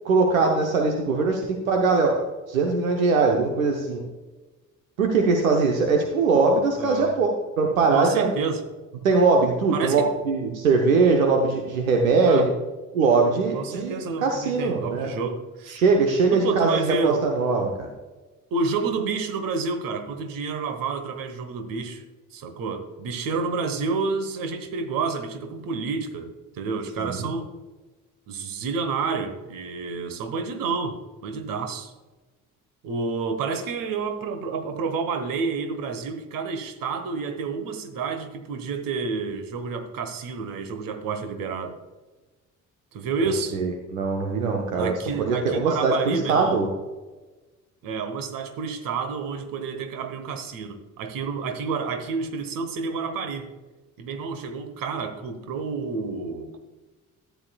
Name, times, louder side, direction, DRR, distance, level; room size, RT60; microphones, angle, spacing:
voice 1, 0.0-2.2 2.5-4.0 5.0-7.3 7.6-8.3 9.0-12.5 12.9-15.1 15.7-17.9 27.2-27.4 43.5-46.7, right 4 dB, 80° right, 2 dB, 0.9 m, -21 dB
voice 2, 6.8-7.2 7.9-8.6 9.7-10.1 12.2-12.5 13.5-15.8 16.3-17.3 18.5-22.0 22.3-27.5 28.3-31.9 32.8-41.8 42.9-43.6 44.7-46.6 47.8-53.5 54.0-56.6, right 4 dB, 55° right, 8 dB, 1.3 m, -29 dB
13.0 x 9.3 x 2.3 m, 1.2 s
figure-of-eight pair, 45°, 40 cm